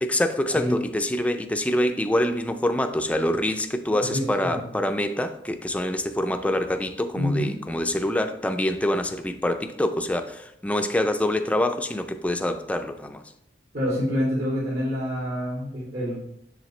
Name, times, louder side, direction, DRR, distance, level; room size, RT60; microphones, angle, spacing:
voice 1, 0.0-13.2, left 1 dB, 10° left, 7 dB, 0.5 m, -25 dB
voice 2, 3.9-4.6 7.1-7.5 13.7-16.2, equal, 65° right, -7 dB, 2.7 m, -27 dB
7.7 x 6.6 x 3.2 m, 0.77 s
head